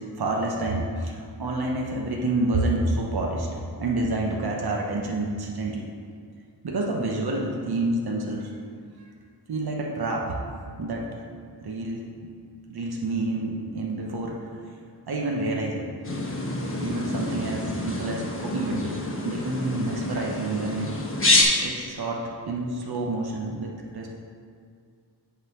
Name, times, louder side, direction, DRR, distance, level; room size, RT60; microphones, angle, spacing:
voice 1, 0.2-3.5 3.8-5.9 6.6-8.5 9.0-9.1 9.5-10.4 10.8-11.2 11.6-12.0 12.7-14.5 15.1-15.9 16.8-19.0 19.2-24.1, right 2 dB, 65° right, -1 dB, 1.0 m, -28 dB
sound 1, 16.0-21.4, left 2 dB, 30° left, 1.1 m, -27 dB
8.1 x 4.1 x 5.4 m, 2.2 s
wide cardioid pair, 85°, 41 cm